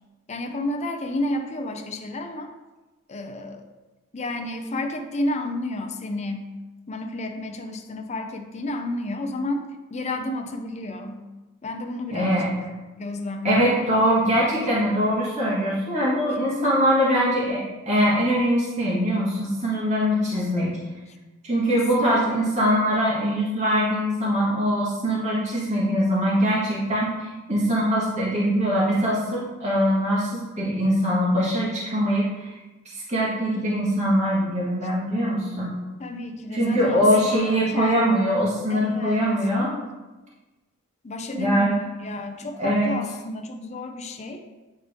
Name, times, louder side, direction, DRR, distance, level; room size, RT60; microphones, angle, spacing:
voice 1, 0.3-2.5 3.1-3.7 4.1-6.5 6.9-9.7 9.9-11.2 11.6-12.6 12.9-13.9 21.1-21.2 21.7-21.8 36.0-38.0 38.7-39.2 41.0-44.5, left 2 dB, 30° left, 5 dB, 0.5 m, -31 dB
voice 2, 12.1-12.5 13.4-20.7 21.4-32.5 32.8-35.7 36.5-39.8 41.3-41.8 42.6-42.9, equal, 35° right, -7 dB, 1.5 m, -22 dB
8.8 x 3.5 x 3.6 m, 1.2 s
head